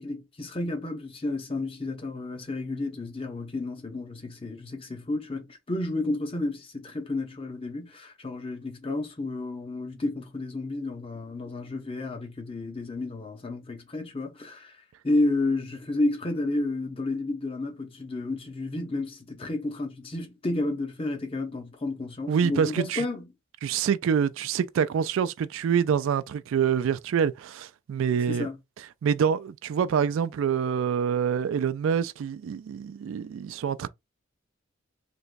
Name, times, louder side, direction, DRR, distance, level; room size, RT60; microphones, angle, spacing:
voice 1, 0.0-14.8 15.0-23.3 28.3-28.6, left 2 dB, 25° left, 0.7 m, -31 dB
voice 2, 22.3-23.0 23.6-28.5 29.0-33.9, right 7 dB, 75° right, 0.3 m, -26 dB
3.4 x 3.0 x 2.5 m
head